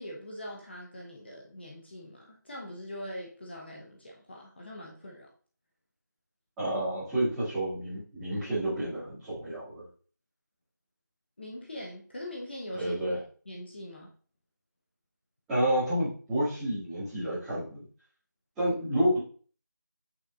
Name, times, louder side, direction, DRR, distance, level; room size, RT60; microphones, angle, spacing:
voice 1, 0.0-5.3 11.4-12.9 13.5-14.1, left 1 dB, 35° left, -2 dB, 1.1 m, -42 dB
voice 2, 6.6-9.9 12.7-13.2 15.5-17.8 18.6-19.2, right 1 dB, 5° right, -16 dB, 2.2 m, -29 dB
6.6 x 5.9 x 2.5 m, 0.41 s
figure-of-eight pair, 170°, 10 cm